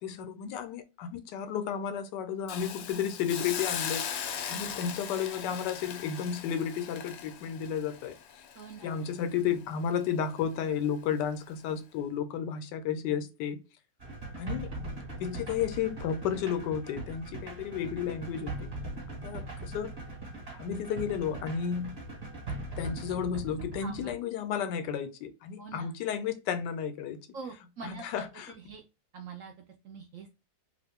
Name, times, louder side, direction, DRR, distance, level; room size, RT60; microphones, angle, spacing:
voice 1, 0.0-8.4 8.8-13.6 14.4-14.7 15.2-18.7 19.2-20.0 20.5-22.0 22.8-27.2 27.8-28.5, left 8 dB, 90° left, 1.2 m, -33 dB
Hiss, 2.5-9.5 9.9-10.1, left 8 dB, 70° left, 0.9 m, -39 dB
voice 2, 4.5-5.0 8.5-9.0 23.8-24.2 25.6-25.9 27.3-28.8 29.1-29.5 29.8-30.3, right 5 dB, 70° right, 0.7 m, -45 dB
sound 1, 14.0-24.2, right 2 dB, 35° right, 1.2 m, -40 dB
2.9 x 2.5 x 3.5 m
omnidirectional pair, 1.8 m